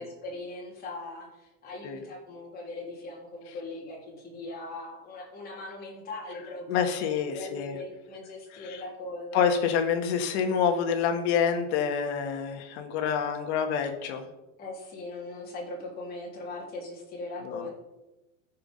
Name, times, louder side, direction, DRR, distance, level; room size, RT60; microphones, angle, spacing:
voice 1, 0.0-9.5 14.6-17.7, left 2 dB, 25° left, -3 dB, 3.2 m, -40 dB
voice 2, 6.7-7.8 8.6-8.8 9.3-14.3 17.4-17.7, left 7 dB, 65° left, 6 dB, 1.6 m, -27 dB
13.5 x 5.8 x 5.4 m, 0.99 s
cardioid pair, 170°, 36 cm